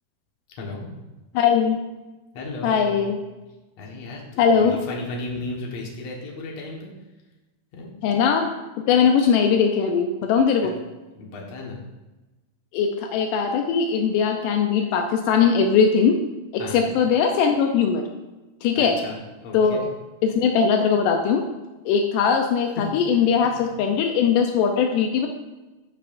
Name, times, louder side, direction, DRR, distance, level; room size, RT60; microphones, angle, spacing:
voice 1, 0.6-0.9 2.3-3.0 3.8-6.9 7.7-7.9 11.2-11.8 16.6-16.9 18.8-19.2 19.4-19.8 22.8-22.9, left 2 dB, 55° left, -1 dB, 2.0 m, -34 dB
voice 2, 1.3-1.8 2.6-3.2 4.4-4.8 8.0-8.5 8.9-10.7 12.7-16.2 16.7-18.0 18.6-19.0 19.5-19.9 20.2-21.4 21.9-25.3, left 6 dB, 85° left, 3 dB, 1.8 m, -20 dB
14.0 x 5.7 x 2.5 m, 1.1 s
omnidirectional pair, 4.5 m